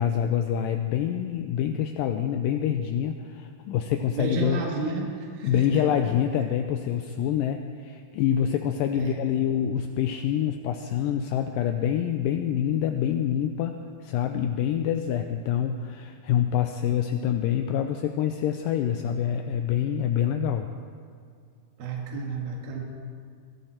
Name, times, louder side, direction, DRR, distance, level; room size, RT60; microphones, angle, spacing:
voice 1, 0.0-4.6 5.4-20.7, left 9 dB, 85° left, 6 dB, 2.0 m, -26 dB
voice 2, 4.2-5.8 9.0-9.2 21.8-22.8, right 4 dB, 70° right, 0 dB, 3.6 m, -31 dB
22.0 x 12.0 x 4.5 m, 2.2 s
omnidirectional pair, 4.5 m